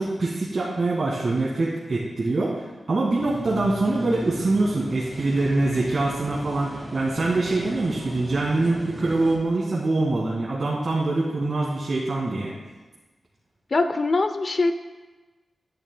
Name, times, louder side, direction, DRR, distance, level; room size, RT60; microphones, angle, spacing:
voice 1, 0.0-2.6 2.9-12.5, right 2 dB, 55° right, -5 dB, 1.8 m, -24 dB
sound 1, 3.2-9.4, right 1 dB, 20° right, 2.8 m, -37 dB
voice 2, 13.7-14.7, left 3 dB, 50° left, 9 dB, 0.5 m, -22 dB
12.5 x 9.9 x 2.2 m, 1.2 s
cardioid pair, 70°, 0 cm